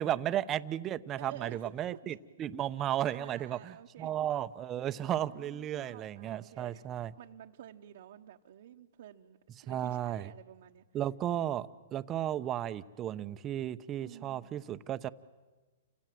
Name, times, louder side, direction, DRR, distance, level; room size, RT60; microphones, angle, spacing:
voice 1, 0.0-7.1 9.7-10.3 10.9-15.1, right 11 dB, 25° right, 12 dB, 0.9 m, -34 dB
voice 2, 1.2-1.9 3.1-4.3 4.9-10.8 11.3-11.7 14.0-14.6, right 11 dB, 65° right, 1 dB, 1.2 m, -51 dB
29.5 x 25.5 x 7.8 m, 1.2 s
hypercardioid pair, 135°, 0 cm